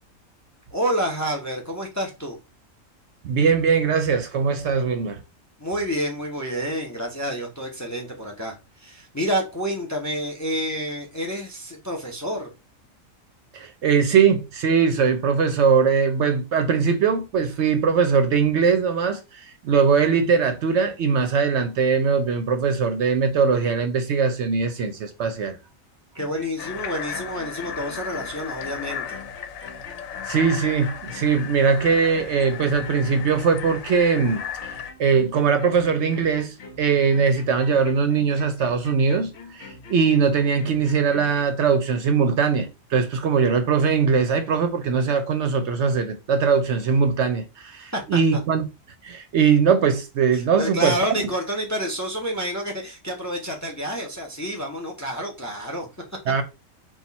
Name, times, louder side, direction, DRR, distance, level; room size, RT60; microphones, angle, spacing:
voice 1, 0.7-2.4 5.6-12.5 26.1-29.1 47.9-48.4 50.3-56.0, equal, 15° left, 0.7 m, -29 dB
voice 2, 3.2-5.2 13.5-25.6 30.2-48.6 49.0-50.9 56.3-56.4, right 6 dB, 65° right, 0.8 m, -21 dB
sound 1, 26.2-41.5, left 3 dB, 60° left, 1.0 m, -44 dB
sound 2, 26.6-34.9, left 8 dB, 85° left, 1.0 m, -35 dB
4.3 x 2.4 x 4.1 m
omnidirectional pair, 1.4 m